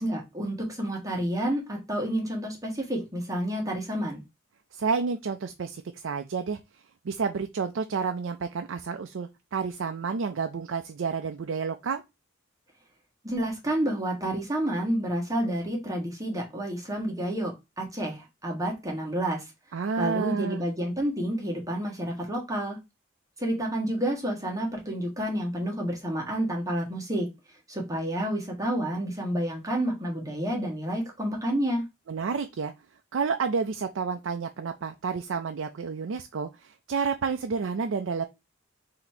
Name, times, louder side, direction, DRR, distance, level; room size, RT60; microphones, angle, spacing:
voice 1, 0.0-4.2 13.2-19.4 20.0-22.8 23.4-27.3 27.7-31.8, right 1 dB, 20° right, 1.5 m, -29 dB
voice 2, 4.7-6.6 7.0-12.0 19.7-20.6 32.1-32.7 33.1-38.2, right 5 dB, 90° right, 0.5 m, -30 dB
4.1 x 2.9 x 4.4 m
head